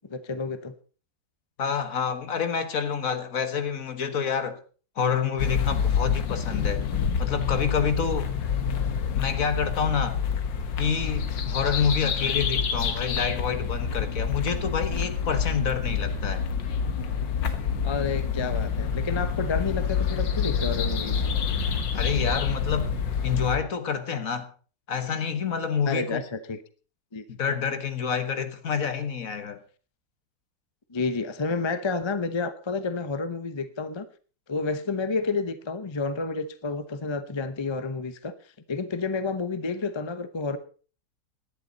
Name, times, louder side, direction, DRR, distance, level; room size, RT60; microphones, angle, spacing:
voice 1, 0.1-0.7 8.5-8.9 12.0-12.3 17.8-21.2 25.9-26.6 27.1-27.2 30.9-34.1 34.5-38.3 38.7-40.6, left 4 dB, 30° left, 0.5 m, -30 dB
voice 2, 1.6-4.6 4.9-6.8 7.2-8.3 9.1-10.2 10.8-16.5 21.9-22.9 23.2-24.5 24.9-26.2 27.3-29.6, left 6 dB, 50° left, 1.7 m, -28 dB
sound 1, 5.4-23.6, left 6 dB, 85° left, 2.0 m, -27 dB
17.5 x 11.5 x 4.1 m
omnidirectional pair, 1.9 m